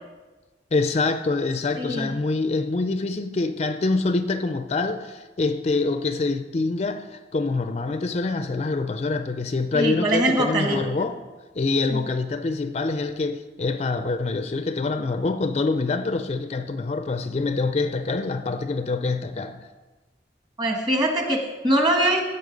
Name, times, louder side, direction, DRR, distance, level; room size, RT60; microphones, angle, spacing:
voice 1, 0.7-11.2 11.6-19.7, left 3 dB, 35° left, 0.4 m, -25 dB
voice 2, 1.8-2.1 9.7-10.8 11.9-12.0 20.6-22.2, right 1 dB, 25° right, 1.4 m, -22 dB
15.5 x 5.4 x 5.1 m
head